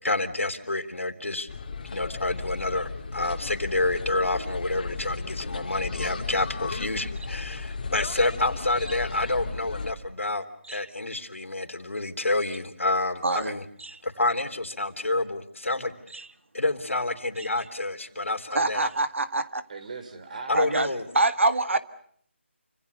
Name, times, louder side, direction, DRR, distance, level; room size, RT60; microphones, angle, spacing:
voice 1, 0.0-1.5 1.8-13.6 14.0-15.9 16.5-18.9 20.5-21.0, left 2 dB, 85° left, 8 dB, 3.2 m, -28 dB
sound 1, 1.5-9.9, left 4 dB, 40° left, 2.7 m, -35 dB
voice 2, 13.2-13.5 13.8-14.0 16.1-16.3 18.5-19.6 20.5-20.9 21.2-21.8, right 2 dB, 75° right, 11 dB, 1.9 m, -25 dB
voice 3, 19.7-21.1, right 4 dB, 35° right, 9 dB, 3.8 m, -40 dB
28.5 x 26.0 x 6.7 m, 0.64 s
figure-of-eight pair, 165°, 7 cm